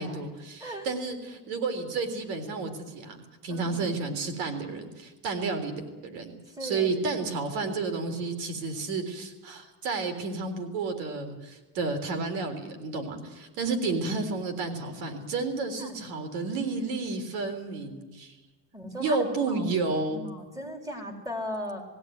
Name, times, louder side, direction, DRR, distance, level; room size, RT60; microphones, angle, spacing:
voice 1, 0.0-3.2 3.4-18.4 19.0-20.2, right 3 dB, 90° right, 6 dB, 3.8 m, -31 dB
voice 2, 3.5-4.0 6.5-6.9 15.8-16.0 18.7-19.2 19.5-19.6 20.1-21.8, equal, 10° right, 3 dB, 3.7 m, -37 dB
20.5 x 16.0 x 9.4 m, 1.2 s
cardioid pair, 145°, 44 cm